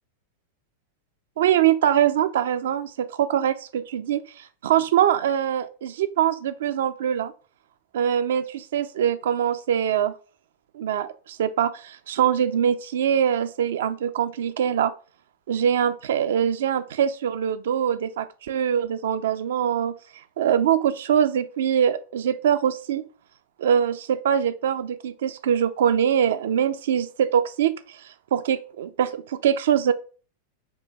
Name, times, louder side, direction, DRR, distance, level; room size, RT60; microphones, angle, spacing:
voice 1, 1.4-4.2 4.6-7.3 7.9-10.1 10.7-14.9 15.5-19.9 20.4-23.0 23.6-29.9, right 9 dB, 60° right, 0.3 m, -23 dB
5.1 x 2.2 x 3.3 m
figure-of-eight pair, 90°, 0 cm